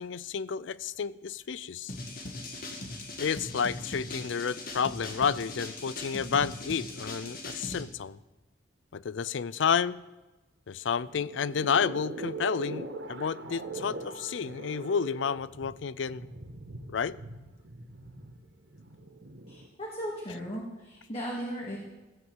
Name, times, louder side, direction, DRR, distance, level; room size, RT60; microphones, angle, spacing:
voice 1, 0.0-1.9 3.2-8.2 8.9-10.0 10.7-16.3 16.9-17.2, left 6 dB, 70° left, 0.4 m, -30 dB
sound 1, 1.9-7.8, left 2 dB, 50° left, 2.1 m, -40 dB
sound 2, 11.0-19.7, right 3 dB, 65° right, 1.5 m, -42 dB
voice 2, 19.5-21.8, equal, 30° left, 2.5 m, -37 dB
15.5 x 9.3 x 7.4 m
head